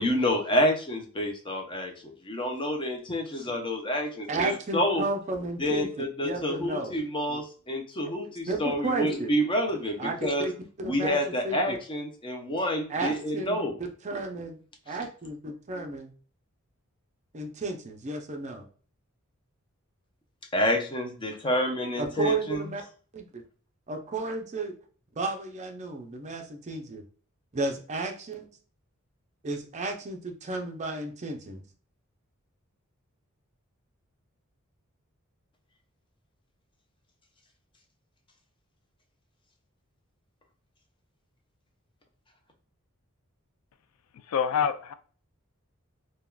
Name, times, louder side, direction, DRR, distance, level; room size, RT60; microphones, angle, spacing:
voice 1, 0.0-5.0 5.6-10.5 10.8-13.7 20.5-22.6, equal, 25° left, 0.6 m, -28 dB
voice 2, 4.3-5.9 6.2-6.9 7.3-7.4 8.5-9.3 10.0-11.2 11.4-11.8 12.9-13.6 14.0-14.6 14.9-16.1 17.3-18.6 22.0-22.8 23.1-23.4 23.9-24.7 25.2-27.0 27.5-28.5 29.4-31.6, right 3 dB, 35° right, 0.5 m, -33 dB
voice 3, 44.3-44.9, left 7 dB, 85° left, 0.3 m, -26 dB
3.4 x 2.2 x 2.2 m
head